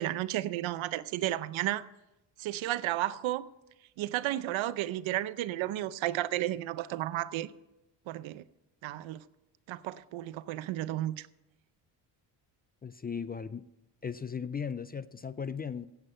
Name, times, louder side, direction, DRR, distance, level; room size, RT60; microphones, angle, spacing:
voice 1, 0.0-1.9 2.4-3.4 4.0-7.5 8.1-8.4 8.8-9.2 9.7-11.3, right 14 dB, 80° right, 0.7 m, -33 dB
voice 2, 12.8-13.6 14.0-15.9, left 6 dB, 20° left, 0.4 m, -37 dB
16.5 x 8.1 x 5.6 m
cardioid pair, 85°, 47 cm